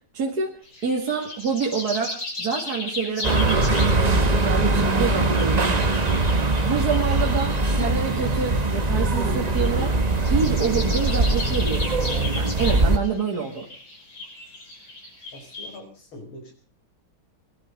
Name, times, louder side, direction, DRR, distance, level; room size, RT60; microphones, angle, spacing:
voice 1, 0.1-0.5 0.8-6.0 6.7-9.9 10.3-13.7, right 5 dB, 50° right, 0 dB, 2.6 m, -27 dB
sound 1, 0.6-15.8, left 2 dB, 65° left, 6.7 m, -36 dB
sound 2, 3.2-13.0, right 2 dB, 25° right, 1.0 m, -22 dB
voice 2, 15.3-16.5, left 1 dB, 80° left, 3 dB, 5.7 m, -43 dB
22.5 x 11.5 x 5.3 m, 0.42 s
omnidirectional pair, 2.2 m